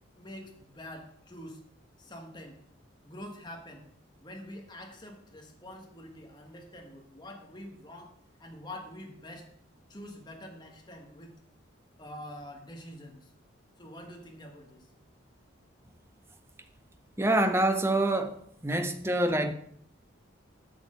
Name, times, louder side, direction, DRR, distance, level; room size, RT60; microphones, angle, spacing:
voice 1, 0.2-1.6 2.0-2.6 3.0-3.9 4.2-8.1 8.4-9.5 9.9-11.3 12.0-13.3 13.8-14.9, left 1 dB, 20° left, 1.5 m, -46 dB
voice 2, 17.2-18.4 18.6-19.5, right 1 dB, 10° right, 0.7 m, -26 dB
8.1 x 6.2 x 6.5 m
head